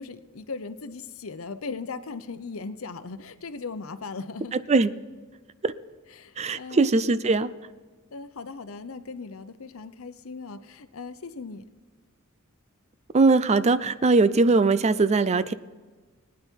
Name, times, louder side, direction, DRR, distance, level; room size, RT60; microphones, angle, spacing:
voice 1, 0.0-4.5 6.1-6.9 8.1-11.6, left 4 dB, 85° left, 11 dB, 0.8 m, -38 dB
voice 2, 6.4-7.5 13.1-15.5, right 3 dB, 30° right, 15 dB, 0.5 m, -20 dB
19.5 x 9.6 x 4.6 m, 1.4 s
head